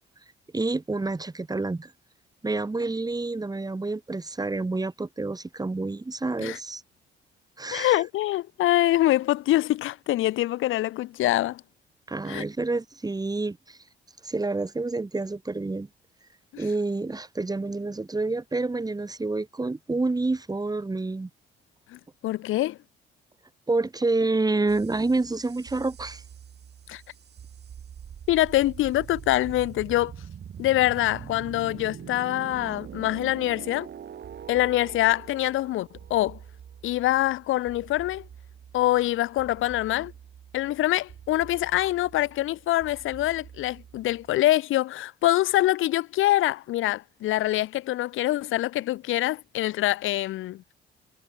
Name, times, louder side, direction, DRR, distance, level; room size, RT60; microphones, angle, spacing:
voice 1, 0.5-1.9 2.4-6.8 7.6-8.0 12.1-13.8 14.2-15.9 16.6-21.3 23.7-26.2, right 3 dB, 20° right, 2.8 m, -28 dB
voice 2, 7.7-11.6 12.3-12.4 16.5-16.6 21.9-22.8 26.9-27.0 28.3-30.1 30.6-33.9 34.5-36.4 36.8-38.2 38.7-40.1 40.5-50.6, left 15 dB, 85° left, 3.1 m, -25 dB
sound 1, 24.7-44.3, right 8 dB, 55° right, 4.9 m, -44 dB
cardioid pair, 90°, 20 cm